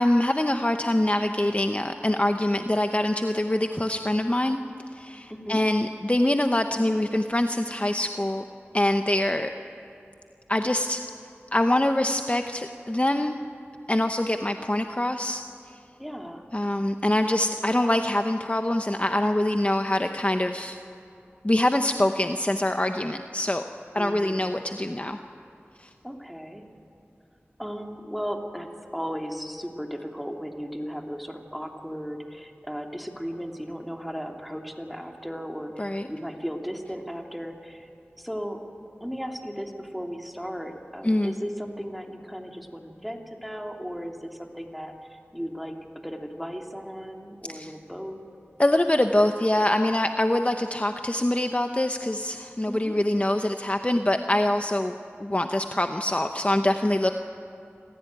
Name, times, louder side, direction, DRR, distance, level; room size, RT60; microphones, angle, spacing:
voice 1, 0.0-4.6 4.9-8.4 8.7-9.5 10.5-11.0 11.5-13.4 13.9-15.4 16.5-20.8 21.4-23.6 23.9-25.2 25.8-25.9 35.8-36.1 41.0-41.3 47.5-47.7 48.6-54.9 55.2-57.1, left 1 dB, 30° left, 6 dB, 0.9 m, -24 dB
voice 2, 16.0-16.4 24.0-24.5 26.0-26.7 27.6-37.9 38.2-38.6 39.0-48.2 52.7-53.0, equal, ahead, 2 dB, 2.6 m, -36 dB
26.5 x 15.5 x 9.1 m, 2.6 s
wide cardioid pair, 40°, 5 cm